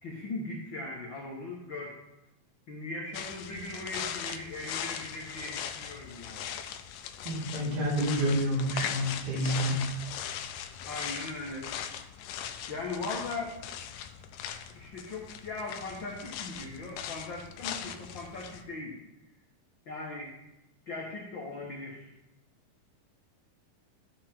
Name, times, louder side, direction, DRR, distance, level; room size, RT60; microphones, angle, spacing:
voice 1, 0.0-2.0 2.7-6.5 10.8-11.7 12.7-13.5 14.7-19.0 19.8-20.3 20.9-22.1, left 2 dB, 60° left, -3 dB, 1.2 m, -39 dB
sound 1, 3.1-18.6, left 9 dB, 80° left, 2.0 m, -40 dB
voice 2, 7.2-10.2, equal, 50° right, -5 dB, 3.9 m, -29 dB
14.0 x 5.2 x 4.4 m, 0.90 s
omnidirectional pair, 4.2 m